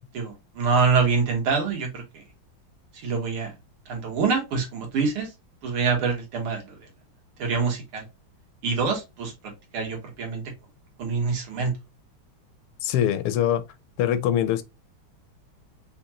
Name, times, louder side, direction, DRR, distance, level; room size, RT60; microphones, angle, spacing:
voice 1, 0.1-2.0 3.0-3.5 3.9-5.3 5.6-6.8 7.4-8.0 8.6-9.3 9.7-10.4 11.0-11.7, right 5 dB, 90° right, 2.2 m, -25 dB
voice 2, 12.8-13.6 14.0-14.6, left 10 dB, 85° left, 1.5 m, -23 dB
5.1 x 2.4 x 2.8 m
omnidirectional pair, 2.3 m